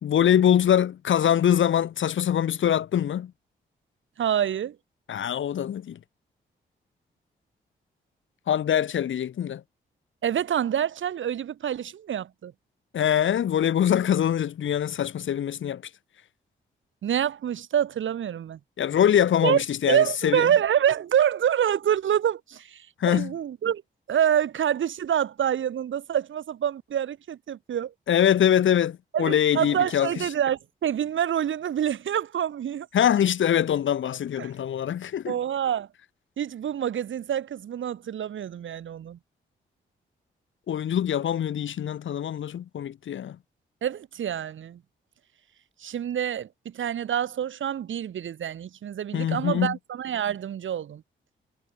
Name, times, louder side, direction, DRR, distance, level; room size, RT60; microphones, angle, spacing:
voice 1, 0.0-3.3 5.1-6.0 8.5-9.6 12.9-15.8 18.8-20.5 23.0-23.3 28.1-30.1 32.9-35.3 40.7-43.4 49.1-49.8, left 10 dB, 75° left, 2.4 m, -23 dB
voice 2, 4.2-4.8 10.2-12.5 17.0-18.6 19.4-23.8 24.1-27.9 29.1-32.9 34.4-34.5 35.3-35.9 36.4-39.2 43.8-44.8 45.8-51.0, right 9 dB, 75° right, 3.9 m, -26 dB
supercardioid pair, 50°, 20 cm